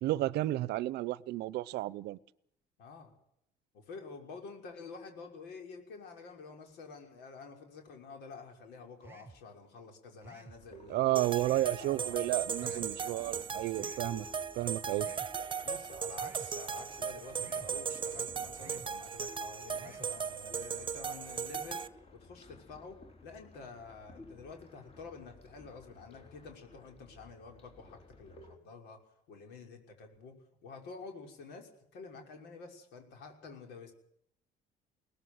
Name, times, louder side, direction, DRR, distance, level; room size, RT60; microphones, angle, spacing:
voice 1, 0.0-2.2 10.9-14.3 14.6-15.1, right 16 dB, 80° right, 21 dB, 0.8 m, -32 dB
voice 2, 2.8-3.1 3.7-13.2 15.6-21.8 22.1-29.0 29.3-30.3 30.6-33.9, left 4 dB, 85° left, 3 dB, 6.0 m, -49 dB
sound 1, 9.0-9.4 10.2-10.6 11.4-11.8 12.6-13.0 13.8-14.1 15.0-15.3 16.2-16.5 17.4-17.7 18.6-18.9 19.8-20.1, right 3 dB, 15° right, 1.5 m, -53 dB
sound 2, 10.6-28.6, left 2 dB, 35° left, 4.1 m, -56 dB
sound 3, 11.2-21.9, right 6 dB, 30° right, 1.0 m, -37 dB
22.0 x 18.5 x 8.1 m, 0.76 s
cardioid pair, 110°, 17 cm